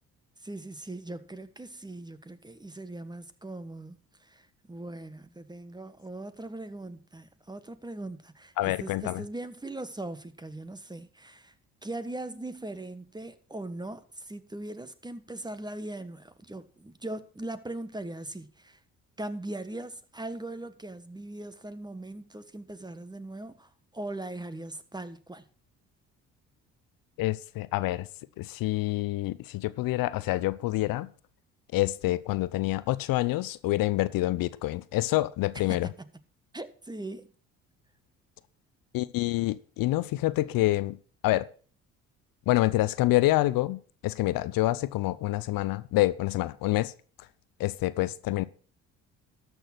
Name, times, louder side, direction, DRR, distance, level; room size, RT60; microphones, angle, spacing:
voice 1, 0.4-11.5 11.8-18.8 19.2-25.4 35.7-36.1 36.5-37.3, right 2 dB, 10° right, 1.2 m, -40 dB
voice 2, 8.6-9.2 27.2-28.1 28.4-31.1 31.7-35.9 38.9-41.0 41.2-41.5 42.5-46.9 47.6-48.5, left 17 dB, 65° left, 0.7 m, -27 dB
12.5 x 6.4 x 6.1 m
hypercardioid pair, 60°, 37 cm